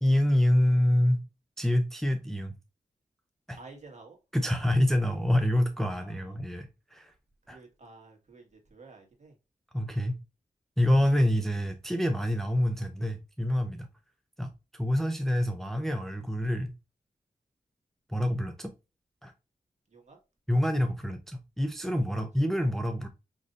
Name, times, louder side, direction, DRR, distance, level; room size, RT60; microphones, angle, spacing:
voice 1, 0.0-1.2 1.6-2.5 3.5-3.6 4.3-7.1 7.5-7.6 9.7-10.2 10.8-13.9 14.4-16.7 18.1-18.7 19.2-19.3 20.5-23.1, left 1 dB, ahead, 0.5 m, -26 dB
voice 2, 3.6-4.2 5.9-6.4 7.5-9.3 19.9-20.2 22.2-22.3, right 3 dB, 50° right, 1.7 m, -51 dB
5.2 x 3.1 x 2.5 m
wide cardioid pair, 75°, 15 cm